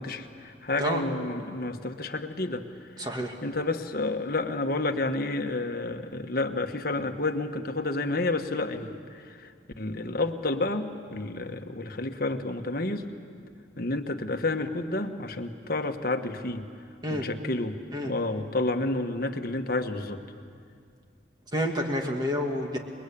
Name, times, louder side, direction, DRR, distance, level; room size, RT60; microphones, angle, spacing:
voice 1, 0.0-2.6 3.0-3.1 3.4-13.1 13.8-16.7 17.1-20.2, left 2 dB, 50° left, 6 dB, 1.4 m, -30 dB
voice 2, 3.0-3.4 17.0-17.3 17.9-18.1 21.5-22.8, equal, 20° right, 2 dB, 2.1 m, -29 dB
28.0 x 22.0 x 8.6 m, 2.3 s
head